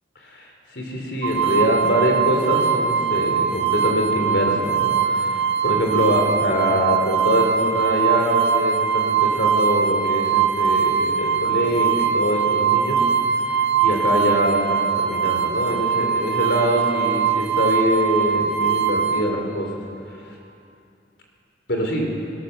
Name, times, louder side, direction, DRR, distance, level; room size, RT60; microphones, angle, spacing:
voice 1, 0.3-13.0 13.5-19.7 20.3-20.4 21.7-22.1, equal, 70° left, 1 dB, 4.0 m, -24 dB
sound 1, 1.2-19.2, right 7 dB, 80° right, 1.3 m, -21 dB
19.5 x 19.5 x 6.9 m, 2.5 s
head